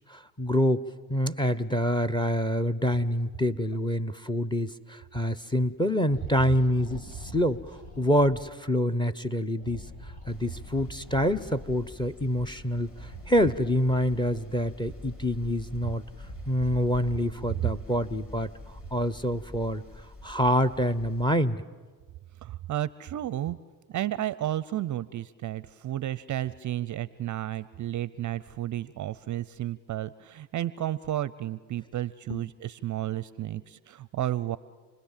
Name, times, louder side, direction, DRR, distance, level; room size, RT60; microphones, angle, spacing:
voice 1, 0.1-9.8 10.3-12.9 13.3-16.0 16.5-18.5 18.9-19.8 20.2-21.6 32.3-32.4, equal, 10° left, 14 dB, 0.9 m, -26 dB
sound 1, 6.1-8.4 9.6-11.9 12.9-15.2 15.8-18.1, left 1 dB, 55° left, 6.7 m, -46 dB
sound 2, 10.3-21.4, left 2 dB, 25° left, 4.8 m, -46 dB
voice 2, 22.4-23.6 23.9-34.6, right 13 dB, 35° right, 19 dB, 0.6 m, -32 dB
29.0 x 20.5 x 7.4 m, 1.4 s
hypercardioid pair, 75°, 49 cm